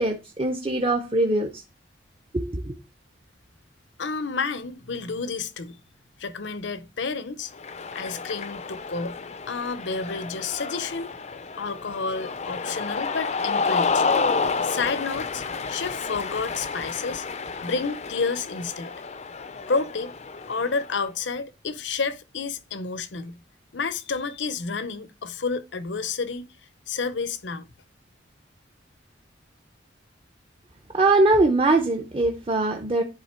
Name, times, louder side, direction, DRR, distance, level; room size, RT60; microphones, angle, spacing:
voice 1, 0.0-1.6 2.3-2.8 30.9-33.0, right 2 dB, 30° right, 0.7 m, -22 dB
voice 2, 4.0-5.8 6.2-7.5 7.9-9.2 9.5-11.1 11.5-14.0 14.6-15.4 15.7-17.3 17.6-18.9 19.7-20.1 20.5-23.4 23.7-26.5 26.9-27.7, left 4 dB, 70° left, 0.7 m, -30 dB
Cheering, 7.5-21.0, left 4 dB, 35° left, 0.5 m, -30 dB
10.5 x 3.7 x 4.4 m
head